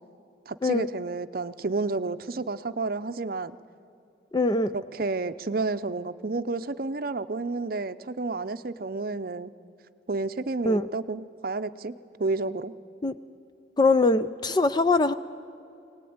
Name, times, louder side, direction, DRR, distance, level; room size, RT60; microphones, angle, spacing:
voice 1, 0.5-3.5 4.7-9.5 10.1-11.9 12.2-12.7, right 3 dB, 50° right, 12 dB, 0.6 m, -30 dB
voice 2, 4.3-4.7 10.7-10.9 13.0-13.2 13.8-15.1, left 2 dB, 20° left, 11 dB, 0.5 m, -22 dB
23.5 x 18.5 x 9.5 m, 2.8 s
head